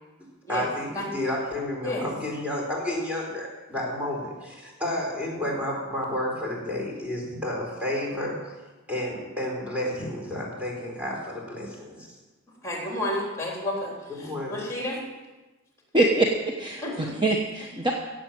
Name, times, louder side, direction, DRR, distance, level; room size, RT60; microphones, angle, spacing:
voice 1, 0.5-8.4 8.9-12.1 14.1-14.6, left 1 dB, 5° right, -2 dB, 4.3 m, -31 dB
voice 2, 12.6-13.9 14.2-15.0 16.8-16.9, left 1 dB, 15° left, -2 dB, 3.6 m, -30 dB
voice 3, 15.9-17.9, right 2 dB, 20° right, 0 dB, 1.2 m, -24 dB
17.0 x 7.7 x 7.6 m, 1.2 s
head